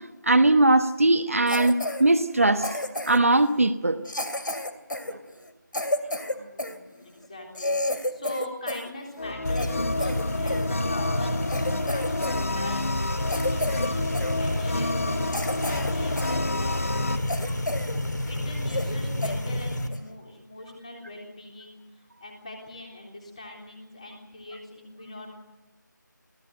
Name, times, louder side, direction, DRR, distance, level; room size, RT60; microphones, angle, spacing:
voice 1, 0.3-2.8 3.1-4.0, right 2 dB, 45° right, 7 dB, 1.2 m, -20 dB
Cough, 1.5-2.0 2.6-3.3 4.1-6.8 7.2-7.3 7.5-8.9 9.2-10.7 11.1-11.2 11.5-12.4 12.7-12.9 13.3-13.9 14.1-14.4 14.9-15.0 15.3-16.4 16.8-16.9 17.3-18.0 18.3-18.4 18.7-19.0 19.2-19.4 19.9-20.1, left 1 dB, 75° left, 2.8 m, -31 dB
voice 2, 6.3-11.3 11.6-12.9 13.3-14.0 14.4-16.8 18.3-25.4, left 1 dB, 20° left, 1 dB, 3.6 m, -42 dB
sound 1, 9.2-17.2, left 2 dB, 40° left, 1.1 m, -31 dB
sound 2, 9.4-19.9, left 1 dB, 60° left, 2.3 m, -29 dB
25.5 x 16.0 x 8.0 m, 1.1 s
figure-of-eight pair, 175°, 11 cm